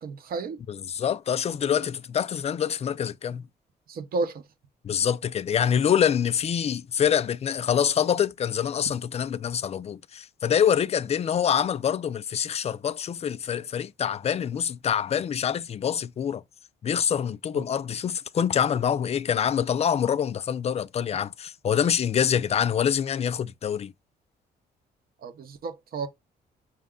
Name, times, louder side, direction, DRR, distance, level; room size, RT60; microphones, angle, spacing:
voice 1, 0.0-0.6 3.9-4.4 17.5-17.6 25.2-26.1, right 3 dB, 60° right, 0.9 m, -32 dB
voice 2, 0.7-3.5 4.8-16.4 16.8-23.9, left 8 dB, 40° left, 0.4 m, -25 dB
6.1 x 2.1 x 3.7 m
cardioid pair, 100°, 17 cm